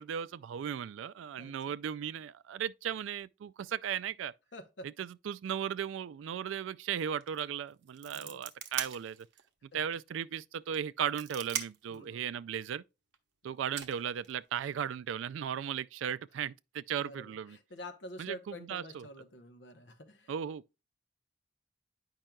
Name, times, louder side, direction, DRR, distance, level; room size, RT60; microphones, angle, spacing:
voice 1, 0.0-4.3 4.8-9.2 9.7-12.8 13.4-17.6 18.2-19.1 20.3-20.8, right 8 dB, 80° right, 0.3 m, -36 dB
voice 2, 4.5-4.9 8.1-8.4 9.7-9.8 11.9-12.2 17.0-20.3, left 1 dB, 65° left, 0.9 m, -48 dB
sound 1, 7.2-7.4 7.7-9.5 9.9-10.0 10.7-12.0 13.1-13.2 13.8-14.8, right 8 dB, 60° right, 0.8 m, -40 dB
8.9 x 5.4 x 2.3 m
head